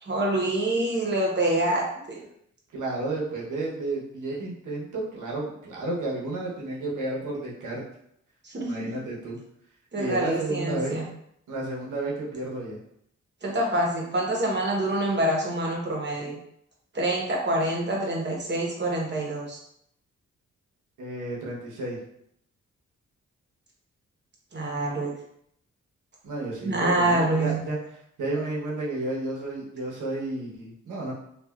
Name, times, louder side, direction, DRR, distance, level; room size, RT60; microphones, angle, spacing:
voice 1, 0.0-2.2 8.4-8.7 9.9-11.0 13.4-16.4 16.9-19.6 24.5-25.1 26.6-27.6, right 1 dB, 35° right, -2 dB, 0.9 m, -26 dB
voice 2, 2.7-7.8 8.7-9.4 9.9-11.0 11.5-12.8 21.0-22.0 26.2-27.8 28.2-31.1, right 2 dB, 85° right, -4 dB, 0.9 m, -32 dB
3.2 x 2.4 x 2.3 m, 0.72 s
cardioid pair, 75°, 30 cm